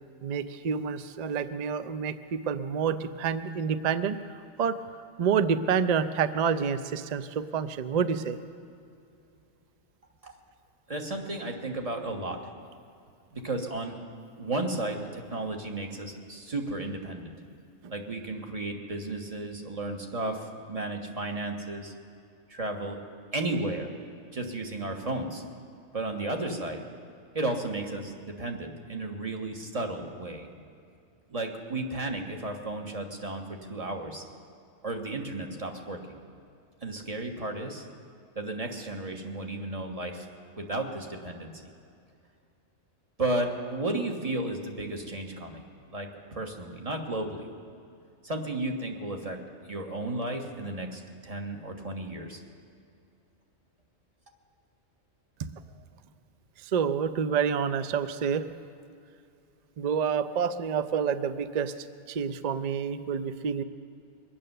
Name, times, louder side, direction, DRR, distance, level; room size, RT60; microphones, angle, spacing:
voice 1, 0.2-4.2 4.6-4.8 5.2-8.4 17.8-17.9 55.4-55.5 56.6-58.4 59.8-61.7 62.1-63.6, right 7 dB, 55° right, 12 dB, 0.4 m, -28 dB
voice 2, 10.9-12.4 13.3-14.0 14.4-17.3 17.9-21.9 22.5-23.0 23.3-23.9 24.3-25.4 25.9-26.8 27.3-30.5 31.3-34.2 34.8-36.2 36.8-37.8 38.3-40.3 40.6-41.5 43.2-45.6 45.9-47.5 48.2-49.4 49.7-52.4, right 2 dB, 30° right, 2 dB, 1.4 m, -33 dB
23.0 x 8.8 x 6.7 m, 2.5 s
omnidirectional pair, 1.4 m